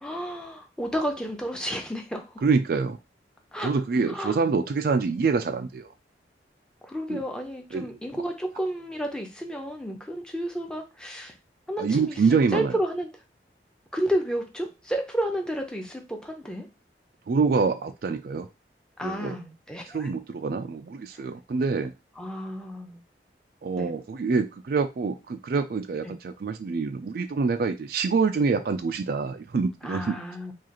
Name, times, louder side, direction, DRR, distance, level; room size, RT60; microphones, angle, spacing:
voice 1, 0.0-2.3 3.5-3.7 4.1-4.4 6.8-11.3 11.7-12.2 12.5-13.1 13.9-16.7 19.0-20.1 21.1-21.2 22.2-23.0 23.8-23.9 26.0-26.1 29.8-30.5, equal, 5° left, 2 dB, 0.6 m, -31 dB
voice 2, 2.4-3.0 3.6-5.9 7.1-7.2 7.7-7.9 11.8-12.7 17.3-18.5 19.0-19.3 19.9-21.9 23.6-30.2, right 4 dB, 55° right, 9 dB, 0.3 m, -26 dB
4.8 x 2.4 x 2.9 m, 0.26 s
head